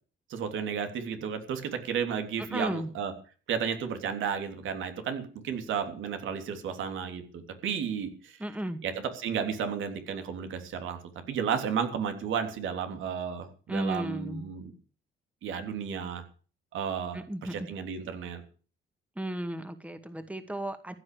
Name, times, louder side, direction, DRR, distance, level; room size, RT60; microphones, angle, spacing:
voice 1, 0.3-3.1 3.5-8.4 8.8-11.0 11.3-14.7 15.4-16.2 16.7-17.2 17.5-18.4, right 7 dB, 80° right, 6 dB, 3.3 m, -33 dB
voice 2, 2.5-2.9 8.4-8.8 13.7-14.4 17.1-17.6 19.2-20.9, right 1 dB, 5° right, 9 dB, 2.1 m, -34 dB
15.5 x 9.5 x 6.9 m, 0.39 s
cardioid pair, 90°, 20 cm